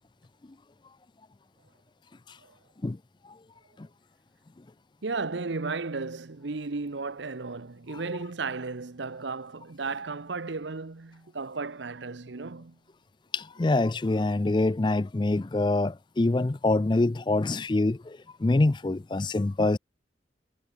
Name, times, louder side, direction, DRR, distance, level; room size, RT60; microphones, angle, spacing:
voice 1, 5.0-12.8, right 4 dB, 70° right, 0.9 m, -34 dB
voice 2, 13.3-19.8, left 2 dB, 25° left, 0.4 m, -25 dB
head